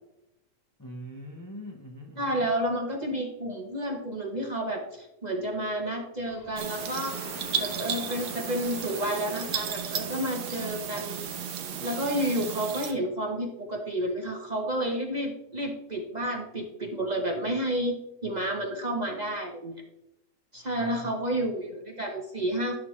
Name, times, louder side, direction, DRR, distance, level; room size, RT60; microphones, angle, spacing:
voice 1, 0.8-2.5 20.8-21.5, equal, 20° left, 1 dB, 0.5 m, -43 dB
voice 2, 2.2-7.2 7.6-11.2 11.8-19.8 20.5-22.7, right 1 dB, 35° right, 2 dB, 0.7 m, -30 dB
sound 1, 6.3-12.6, left 1 dB, 65° left, 2.2 m, -45 dB
sound 2, 6.6-12.9, right 8 dB, 75° right, 1.5 m, -34 dB
11.5 x 6.2 x 3.1 m, 0.88 s
omnidirectional pair, 1.8 m